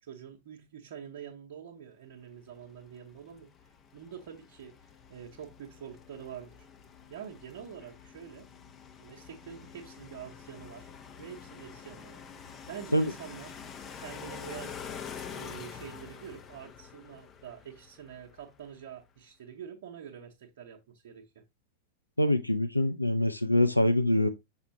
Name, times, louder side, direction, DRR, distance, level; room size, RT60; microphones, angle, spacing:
voice 1, 0.0-3.5 3.9-6.6 7.1-8.5 9.0-13.6 14.0-14.8 15.0-21.4, right 8 dB, 55° right, 1.0 m, -46 dB
sound 1, 2.6-18.8, left 7 dB, 25° left, 0.8 m, -47 dB
voice 2, 22.2-24.3, left 1 dB, 85° left, 0.4 m, -24 dB
5.9 x 5.7 x 2.9 m
figure-of-eight pair, 90°, 0 cm